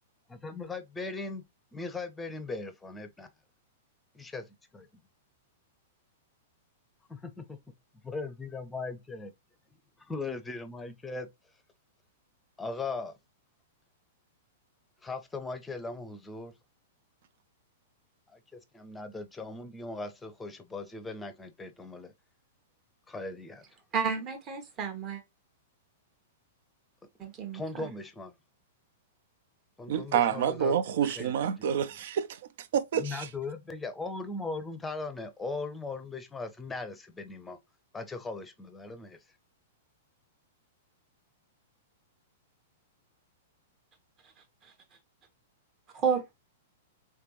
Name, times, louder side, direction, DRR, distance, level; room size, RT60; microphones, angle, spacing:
voice 1, 0.3-1.4 1.7-3.3 4.1-4.5 4.7-5.0 7.1-7.6 8.0-9.3 10.0-11.3 12.6-13.2 15.0-16.5 18.3-22.1 23.1-23.6 27.5-28.3 29.8-30.8 31.0-31.3 32.9-37.6 37.9-39.2, left 3 dB, 10° left, 0.7 m, -39 dB
voice 2, 23.9-25.2 27.2-27.9 44.6-44.7 45.9-46.4, right 6 dB, 35° right, 1.3 m, -31 dB
voice 3, 29.9-33.3, right 8 dB, 60° right, 0.5 m, -28 dB
3.3 x 3.2 x 3.0 m
figure-of-eight pair, 105°, 0 cm